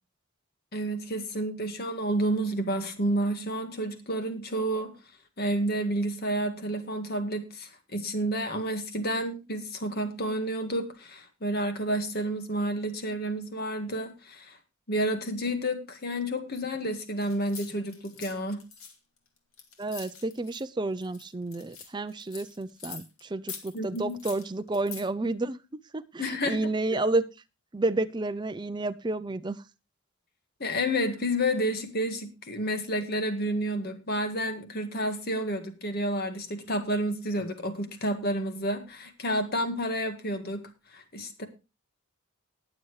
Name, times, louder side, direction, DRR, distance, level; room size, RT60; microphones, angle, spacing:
voice 1, 0.7-4.9 5.4-14.6 14.9-18.6 23.7-24.2 26.2-27.0 30.6-40.6 40.9-41.5, equal, 45° left, 7 dB, 1.8 m, -30 dB
sound 1, 17.2-20.6 21.0-23.2 23.5-25.0, left 6 dB, 75° left, 2.3 m, -44 dB
voice 2, 19.8-27.2 27.7-29.6, right 2 dB, 20° right, 11 dB, 0.5 m, -30 dB
19.5 x 7.1 x 3.2 m, 0.28 s
head